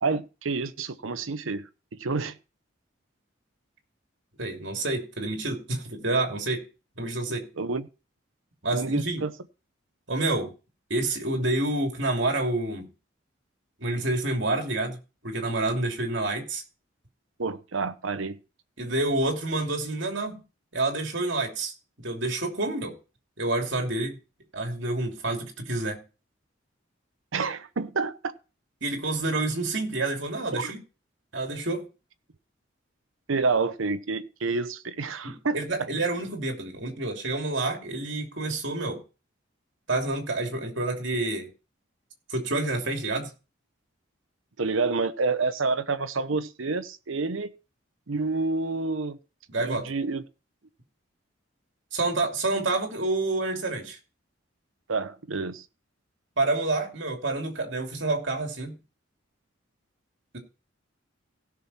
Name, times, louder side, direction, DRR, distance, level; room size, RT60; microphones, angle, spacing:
voice 1, 0.0-1.6 1.9-2.4 7.6-7.9 8.7-9.3 17.4-18.4 27.3-28.3 30.5-30.7 33.3-35.9 44.6-47.5 48.1-49.2 49.6-50.2 54.9-55.6, right 4 dB, 80° right, 0.8 m, -28 dB
voice 2, 4.4-6.6 7.0-7.5 8.6-9.2 10.1-10.5 10.9-12.9 13.8-15.0 15.2-16.6 18.8-20.4 20.7-21.7 22.0-22.9 23.4-24.2 24.5-26.0 28.8-30.8 31.3-31.9 35.2-39.0 39.9-41.5 42.3-43.3 49.5-49.9 51.9-54.0 56.4-58.7 60.3-60.4, right 2 dB, 65° right, 2.8 m, -28 dB
16.5 x 6.2 x 4.3 m
head